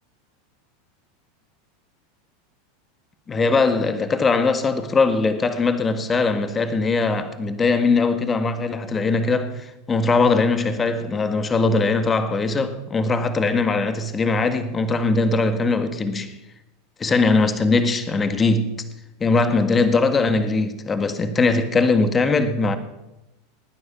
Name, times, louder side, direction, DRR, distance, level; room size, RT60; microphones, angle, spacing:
voice 1, 3.3-16.4 17.0-18.8 19.2-22.8, left 3 dB, 25° left, 1.7 m, -20 dB
18.5 x 9.8 x 6.0 m
hypercardioid pair, 100°, 0 cm